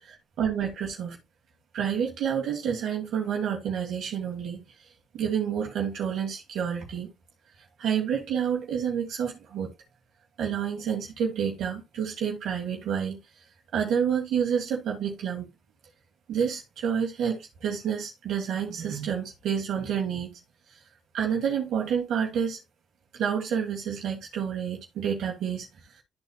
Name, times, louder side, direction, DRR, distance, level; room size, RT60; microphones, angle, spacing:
voice 1, 0.4-1.2 1.7-4.6 5.1-7.1 7.8-9.7 10.4-13.2 13.7-15.5 16.3-20.3 21.1-22.6 23.1-25.7, right 8 dB, 70° right, 1.7 m, -29 dB
12.5 x 4.2 x 2.3 m
cardioid pair, 90°, 0 cm